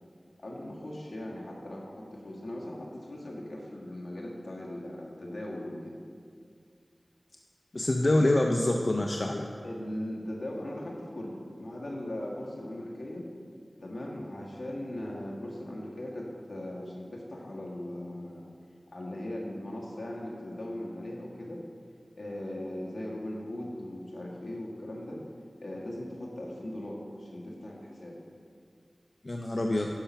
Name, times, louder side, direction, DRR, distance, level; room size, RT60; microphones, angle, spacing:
voice 1, 0.4-5.9 9.6-13.3 13.8-18.4 18.9-21.6 22.2-25.2 25.6-28.2, left 1 dB, 80° left, -3 dB, 1.7 m, -39 dB
voice 2, 7.7-9.5 29.2-29.9, left 1 dB, 55° left, 2 dB, 0.6 m, -26 dB
10.5 x 5.7 x 5.8 m, 2.2 s
wide cardioid pair, 50°, 0 cm